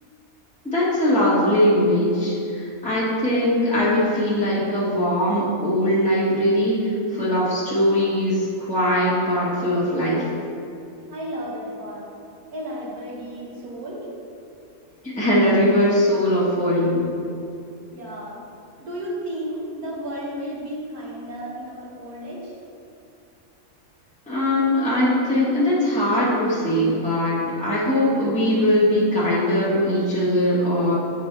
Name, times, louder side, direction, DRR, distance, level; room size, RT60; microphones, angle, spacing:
voice 1, 0.6-10.2 15.1-17.1 24.3-30.9, left 1 dB, 5° left, -9 dB, 1.5 m, -21 dB
voice 2, 11.1-12.1 12.5-14.1 17.9-18.4 18.8-22.5, equal, 70° right, -4 dB, 1.9 m, -33 dB
8.1 x 5.9 x 3.3 m, 2.5 s
omnidirectional pair, 1.6 m